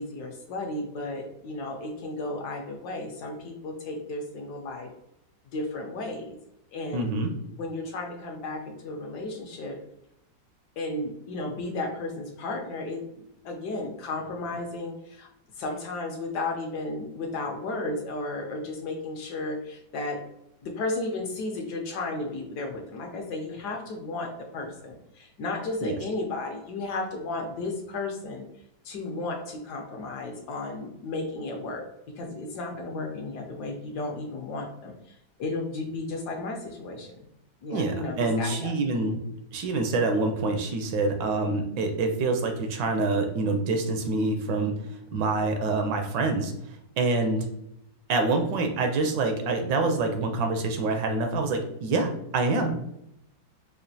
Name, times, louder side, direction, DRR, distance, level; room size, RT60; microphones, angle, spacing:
voice 1, 0.0-4.9 5.5-6.4 6.7-7.2 7.6-9.8 10.8-15.3 15.6-20.2 20.6-28.4 28.8-31.8 32.2-37.2 37.6-38.7, left 2 dB, 70° left, 2 dB, 1.1 m, -34 dB
voice 2, 6.9-7.3 25.8-26.0 37.7-39.2 39.5-44.7 45.1-46.5 47.0-47.5 48.1-52.7, right 3 dB, 75° right, 5 dB, 1.2 m, -26 dB
4.9 x 2.4 x 2.7 m, 0.80 s
omnidirectional pair, 2.1 m